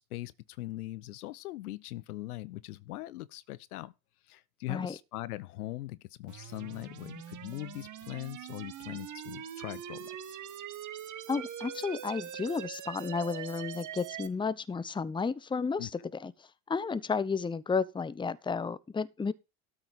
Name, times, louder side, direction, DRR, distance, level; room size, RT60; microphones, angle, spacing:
voice 1, 0.0-3.9 4.3-10.4 15.8-15.9, left 17 dB, 80° left, 0.8 m, -41 dB
sound 1, 6.3-14.3, right 10 dB, 40° right, 1.5 m, -43 dB
voice 2, 11.3-15.9 16.2-16.3 16.7-19.3, left 5 dB, 10° left, 0.7 m, -32 dB
13.0 x 5.8 x 5.2 m
hypercardioid pair, 70°, 44 cm